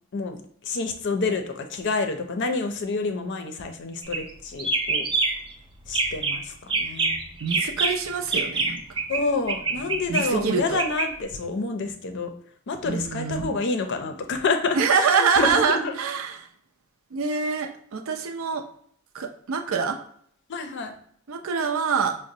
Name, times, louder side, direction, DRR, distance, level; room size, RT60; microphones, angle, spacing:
voice 1, 0.6-5.0 5.9-7.2 9.1-12.3 12.7-16.0 20.5-20.9, left 3 dB, 60° left, 6 dB, 0.5 m, -28 dB
sound 1, 4.0-4.3 4.6-5.5 5.9-6.4 6.7-9.2 9.5-11.1, right 3 dB, 25° right, 0.4 m, -25 dB
voice 2, 7.4-8.8 10.1-10.8 12.8-13.6 14.7-16.5 17.1-18.6 19.1-20.0 21.3-22.2, right 5 dB, 85° right, 5 dB, 0.5 m, -25 dB
4.9 x 2.1 x 2.7 m, 0.64 s
head